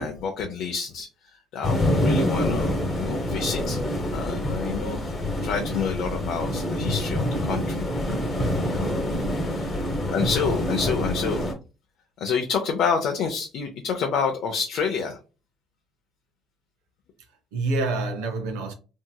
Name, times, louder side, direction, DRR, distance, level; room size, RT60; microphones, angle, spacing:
voice 1, 0.0-3.8 4.1-5.0 5.4-7.9 8.6-8.9 9.5-9.8 10.1-11.5 12.2-15.2, left 6 dB, 65° left, 0.5 m, -28 dB
sound 1, 1.6-11.5, left 1 dB, 30° left, 1.0 m, -26 dB
voice 2, 10.2-10.5 17.2-18.7, right 2 dB, 85° right, 0.6 m, -28 dB
2.7 x 2.7 x 2.2 m
supercardioid pair, 75°, 0 cm